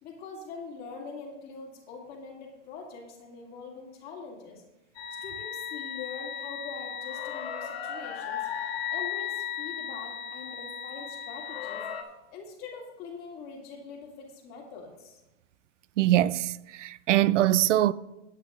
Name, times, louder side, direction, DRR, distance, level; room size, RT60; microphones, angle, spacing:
voice 1, 0.0-4.6 5.2-8.5 8.9-11.8 12.3-15.2, left 5 dB, 25° left, 2.3 m, -43 dB
sound 1, 4.9-12.0, left 8 dB, 55° left, 1.9 m, -36 dB
voice 2, 16.0-17.9, right 14 dB, 85° right, 0.5 m, -23 dB
18.0 x 9.0 x 2.4 m
supercardioid pair, 165°, 36 cm